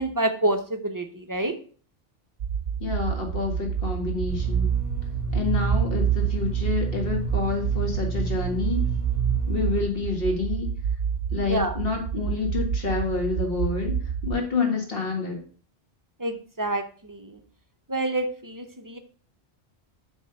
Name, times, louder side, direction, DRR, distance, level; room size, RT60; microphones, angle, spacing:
voice 1, 0.0-1.5 11.4-11.8 16.2-17.4 17.9-19.0, right 2 dB, 25° right, 6 dB, 0.5 m, -28 dB
sound 1, 2.4-14.4, right 7 dB, 75° right, 0.8 m, -29 dB
voice 2, 2.8-4.7 5.3-8.8 9.5-10.7 11.3-14.0 14.2-15.4, left 4 dB, 55° left, 1 dB, 1.8 m, -28 dB
sound 2, 4.3-9.8, right 6 dB, ahead, 2.9 m, -27 dB
7.2 x 3.6 x 5.6 m, 0.43 s
omnidirectional pair, 1.2 m